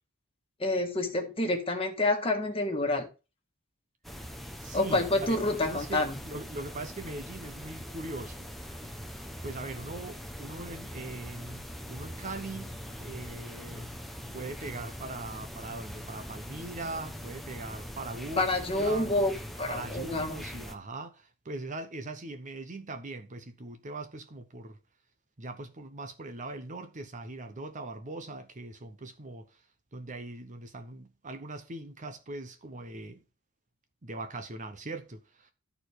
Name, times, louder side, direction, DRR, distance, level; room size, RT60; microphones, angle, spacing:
voice 1, 0.6-3.1 4.7-6.2 18.3-20.4, left 2 dB, 25° left, 1.6 m, -28 dB
sound 1, 4.0-20.8, equal, ahead, 0.8 m, -42 dB
voice 2, 4.6-8.5 9.4-13.9 14.3-18.4 18.7-19.1 19.7-24.8 25.4-29.6 29.9-33.2 34.0-35.5, right 2 dB, 35° right, 0.9 m, -41 dB
12.5 x 4.6 x 4.7 m
head